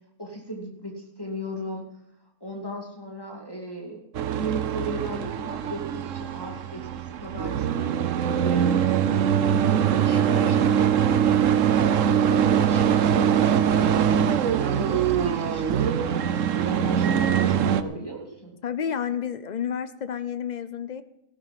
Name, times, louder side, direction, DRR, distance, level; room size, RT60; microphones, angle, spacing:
voice 1, 0.2-1.9 2.4-4.1 4.3-8.7 9.4-11.1 11.7-14.2 14.6-18.5, right 1 dB, 15° left, -2 dB, 2.5 m, -36 dB
sound 1, 4.1-17.8, right 9 dB, 60° right, 1.0 m, -22 dB
voice 2, 18.6-21.0, left 8 dB, 60° left, 12 dB, 0.4 m, -30 dB
16.0 x 11.5 x 5.9 m, 0.81 s
omnidirectional pair, 1.7 m